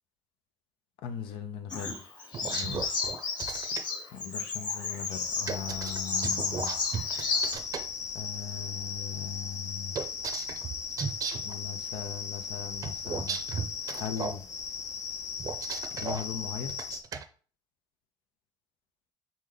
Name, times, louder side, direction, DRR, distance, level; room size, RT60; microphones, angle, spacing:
voice 1, 1.0-2.0 2.5-3.0 4.1-6.7 8.1-10.0 11.4-13.4 13.9-14.4 15.9-16.8, left 8 dB, 90° left, 7 dB, 0.7 m, -39 dB
Bird vocalization bird call bird song, 1.7-7.5, left 4 dB, 60° left, 1.3 m, -33 dB
sound 1, 2.3-3.8 5.5-7.8 9.9-11.5 12.8-14.4 15.4-16.2 16.7-17.2, right 6 dB, 45° right, 0.5 m, -35 dB
sound 2, 5.1-17.0, left 6 dB, 35° left, 0.5 m, -37 dB
4.2 x 3.2 x 3.8 m, 0.41 s
cardioid pair, 110°, 9 cm